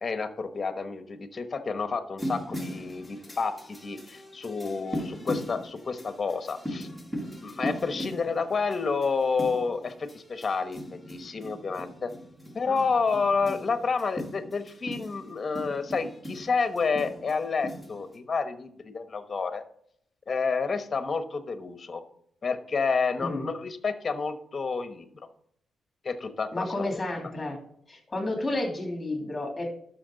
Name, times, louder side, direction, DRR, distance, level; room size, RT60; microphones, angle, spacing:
voice 1, 0.0-3.6 3.8-6.9 7.4-12.1 12.5-19.6 20.3-22.0 22.4-25.1 26.0-27.0, left 4 dB, 35° left, 9 dB, 1.2 m, -29 dB
sound 1, 2.2-18.2, equal, ahead, 1.9 m, -39 dB
voice 2, 26.5-27.6 27.9-29.7, left 1 dB, 20° left, 3 dB, 3.1 m, -31 dB
12.0 x 6.4 x 4.0 m, 0.68 s
cardioid pair, 100°, 0 cm